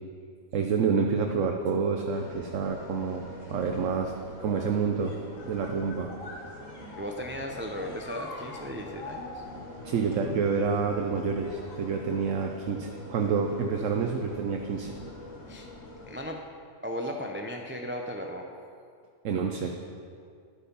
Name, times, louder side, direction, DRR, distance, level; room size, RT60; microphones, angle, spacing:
voice 1, 0.5-4.1 4.4-5.2 5.4-6.1 6.7-6.9 9.8-14.9 19.2-19.7, right 5 dB, 80° right, 3 dB, 1.1 m, -28 dB
sound 1, 2.1-16.2, left 2 dB, 80° left, 1.9 m, -44 dB
voice 2, 7.0-9.4 15.5-15.7 16.1-16.4 16.8-18.5, equal, 15° right, 1 dB, 0.5 m, -36 dB
11.5 x 8.4 x 5.4 m, 2.3 s
omnidirectional pair, 1.3 m